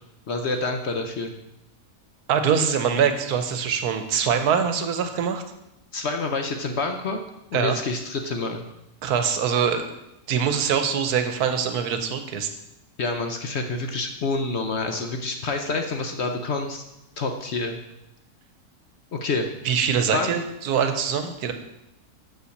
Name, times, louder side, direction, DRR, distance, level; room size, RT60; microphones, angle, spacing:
voice 1, 0.3-1.3 5.9-7.2 7.5-8.6 13.0-16.8 17.2-17.8 19.1-19.5 20.1-20.3, left 3 dB, 55° left, 4 dB, 0.8 m, -27 dB
voice 2, 2.3-5.4 7.5-7.8 9.0-10.0 10.3-12.5 19.6-21.5, right 7 dB, 80° right, 7 dB, 1.3 m, -23 dB
6.2 x 5.6 x 6.5 m, 0.88 s
omnidirectional pair, 1.6 m